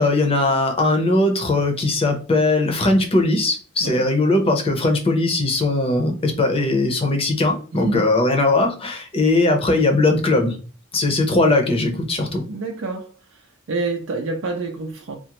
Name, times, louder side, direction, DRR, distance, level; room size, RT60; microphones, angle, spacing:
voice 1, 0.0-10.6 10.9-12.4, left 2 dB, 30° left, 0.6 m, -19 dB
voice 2, 7.7-8.1 12.5-15.2, right 3 dB, 70° right, 0.5 m, -28 dB
3.7 x 2.0 x 2.9 m
head